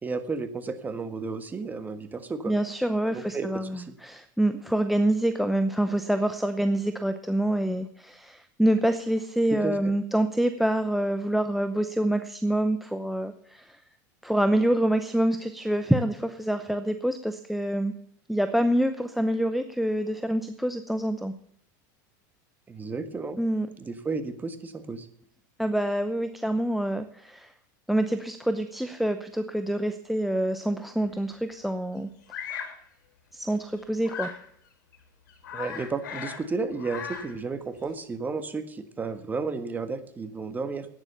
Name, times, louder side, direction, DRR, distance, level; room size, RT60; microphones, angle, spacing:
voice 1, 0.0-2.5 3.1-3.5 3.7-3.9 9.6-9.7 22.7-23.4 23.8-25.1 35.5-40.9, right 4 dB, 15° right, 10 dB, 1.5 m, -32 dB
voice 2, 2.5-13.8 14.2-17.9 18.3-21.3 23.4-23.7 25.6-27.5 27.9-32.1 33.3-34.3, right 1 dB, ahead, 10 dB, 0.7 m, -26 dB
Bird vocalization bird call bird song, 32.3-32.8 34.0-34.4 34.9-35.0 35.3-36.5 36.7-37.4, left 7 dB, 90° left, 3.1 m, -37 dB
12.0 x 9.7 x 6.8 m, 0.67 s
supercardioid pair, 130°, 10 cm